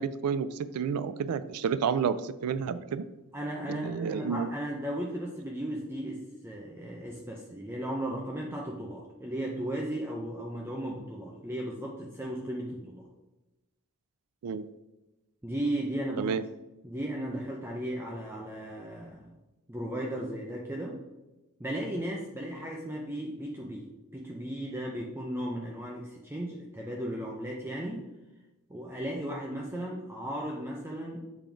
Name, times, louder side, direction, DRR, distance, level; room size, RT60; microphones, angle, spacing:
voice 1, 0.0-3.1 3.7-4.5 14.4-14.6 16.2-16.4, right 6 dB, 80° right, 14 dB, 0.3 m, -30 dB
voice 2, 3.3-13.1 15.4-16.4 16.8-19.4 19.7-21.0 21.6-28.1 28.7-31.2, right 1 dB, 10° right, -2 dB, 0.6 m, -36 dB
7.0 x 3.8 x 4.5 m, 1.0 s
head